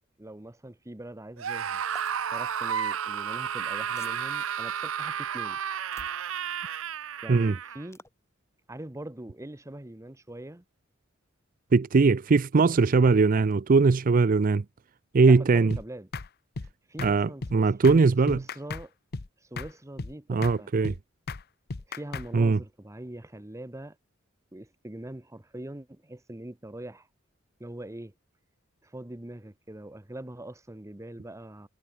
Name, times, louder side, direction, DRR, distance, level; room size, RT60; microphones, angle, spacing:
voice 1, 0.2-1.8 2.3-5.6 7.2-8.0 8.7-10.6 15.2-16.1 16.9-17.7 18.3-18.9 19.4-20.7 21.9-24.0 24.5-27.1 27.6-28.1 28.8-31.7, right 1 dB, 15° right, 1.0 m, -42 dB
Screaming, 1.4-7.9, right 8 dB, 90° right, 0.7 m, -32 dB
sound 1, 1.9-2.1 3.9-4.3 5.9-6.2 7.9-8.1, left 2 dB, 15° left, 6.4 m, -48 dB
voice 2, 11.7-14.6 15.1-15.8 17.0-18.4 20.3-20.9 22.3-22.6, right 4 dB, 45° right, 0.5 m, -21 dB
sound 2, 15.7-15.8 16.1-16.3 16.5-16.7 17.0-17.1 17.4-17.5 17.8-18.0 18.3-18.8 19.1-19.3 19.6-19.7 20.0-20.1 20.4-20.6 20.8-21.0 21.3-21.4 21.7-22.3, left 4 dB, 55° left, 0.8 m, -35 dB
head